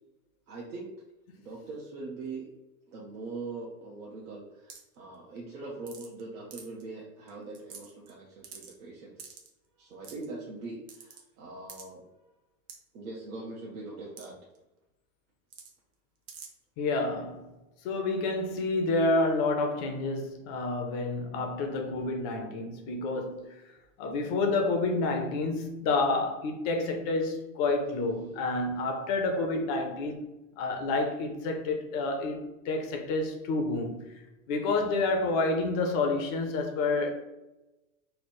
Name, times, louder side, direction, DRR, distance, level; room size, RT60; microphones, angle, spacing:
voice 1, 0.5-0.9 1.4-2.5 2.9-9.3 9.8-12.0 12.9-14.4, right 3 dB, 85° right, 0.9 m, -42 dB
sound 1, 4.7-4.9 5.9-6.2 6.5-6.8 7.3-7.4 7.5-8.1 8.4-8.7 9.2-9.5 10.0-10.3 10.9-11.2 11.7-11.8 12.7-12.8 14.2-14.3 14.5-14.6 15.5-15.7 16.3-16.5, right 6 dB, 45° right, 0.8 m, -46 dB
voice 2, 16.8-17.5 17.8-23.6 24.0-30.2 30.6-34.1 34.5-37.1, left 3 dB, 30° left, 0.4 m, -29 dB
3.1 x 2.0 x 4.1 m
supercardioid pair, 140°, 42 cm